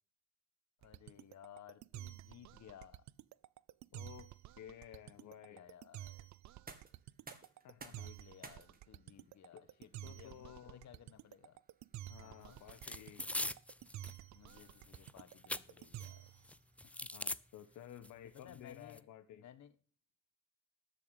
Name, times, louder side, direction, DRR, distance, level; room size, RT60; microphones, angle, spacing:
voice 1, 0.8-3.0 5.0-6.3 7.9-11.6 12.2-12.6 14.3-16.3 16.8-17.1 18.2-19.7, left 9 dB, 65° left, 1.6 m, -58 dB
sound 1, 0.8-16.5, right 13 dB, 65° right, 0.6 m, -51 dB
voice 2, 3.9-4.3 4.6-5.6 7.6-8.1 9.5-9.6 10.0-10.9 12.1-13.6 17.1-19.4, left 11 dB, 80° left, 1.2 m, -54 dB
sound 2, 6.4-18.2, right 4 dB, 30° right, 2.3 m, -62 dB
sound 3, 12.7-14.2 14.5-16.1 16.4-17.4 18.0-18.1 18.4-19.0, left 1 dB, 5° left, 0.6 m, -42 dB
12.5 x 7.1 x 8.3 m
cardioid pair, 90°, 30 cm